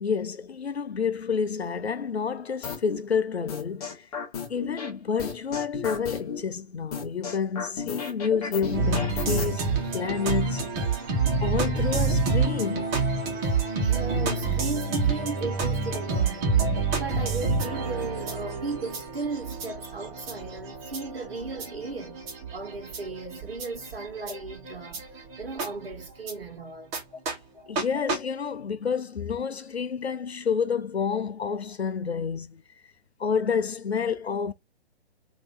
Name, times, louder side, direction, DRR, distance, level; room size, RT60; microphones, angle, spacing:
voice 1, 0.0-4.1 4.5-10.7 11.4-12.9 27.7-32.6 33.2-34.5, left 6 dB, 75° left, 0.6 m, -29 dB
sound 1, 2.6-3.0 3.5-4.9 5.2-6.4 6.9-9.5, left 5 dB, 35° left, 1.4 m, -33 dB
sound 2, 8.7-26.3 26.9-27.0 27.3-27.4 27.8-27.9 28.1-28.2, right 4 dB, 20° right, 1.4 m, -28 dB
voice 2, 13.8-16.6 16.9-22.2 22.5-26.9 27.5-27.8, right 3 dB, 65° right, 1.2 m, -36 dB
3.1 x 2.9 x 4.0 m
figure-of-eight pair, 125°, 32 cm